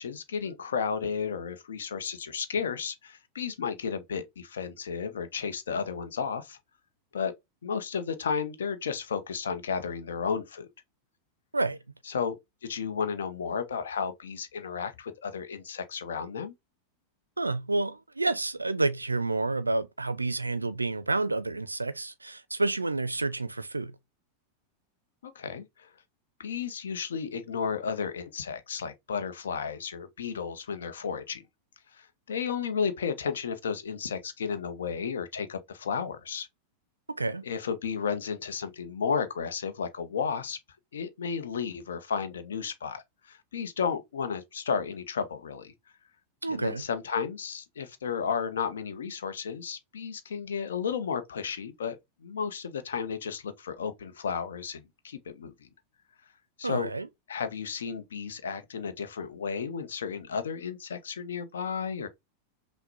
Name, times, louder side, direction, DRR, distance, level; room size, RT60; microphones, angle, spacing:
voice 1, 0.0-6.6 7.1-7.3 7.6-10.7 12.1-12.4 12.6-16.5 25.2-25.9 26.4-31.5 31.9-36.5 37.4-40.6 40.9-45.7 46.5-55.7 56.6-56.9 57.3-62.1, left 6 dB, 65° left, 0.6 m, -33 dB
voice 2, 17.4-24.0 37.1-37.5 46.4-46.8 56.6-57.1, right 2 dB, 80° right, 0.4 m, -29 dB
5.7 x 2.1 x 2.6 m
figure-of-eight pair, 90°, 0 cm